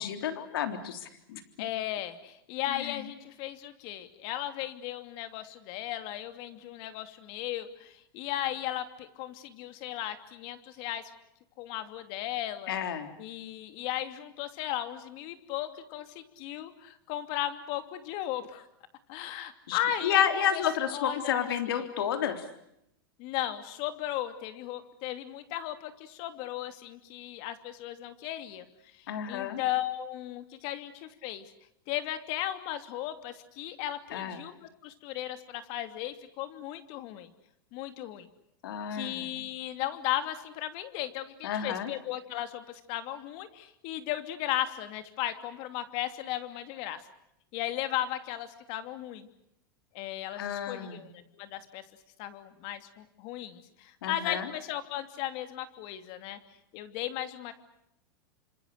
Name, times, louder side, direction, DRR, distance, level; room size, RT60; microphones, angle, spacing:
voice 1, 0.0-1.4 2.8-3.0 12.7-13.2 19.7-22.4 29.1-29.6 34.1-34.4 38.6-39.4 41.4-41.9 50.4-51.1 54.0-54.5, left 9 dB, 75° left, 7 dB, 3.5 m, -31 dB
voice 2, 1.6-11.0 11.6-12.7 13.2-18.7 19.1-20.2 20.5-20.6 20.9-21.3 21.8-21.9 23.2-31.5 31.9-37.3 37.7-38.3 38.9-47.0 47.5-49.3 49.9-51.8 52.2-56.4 56.7-57.5, left 13 dB, 50° left, 9 dB, 2.9 m, -36 dB
29.0 x 26.0 x 6.7 m, 0.80 s
supercardioid pair, 140°, 12 cm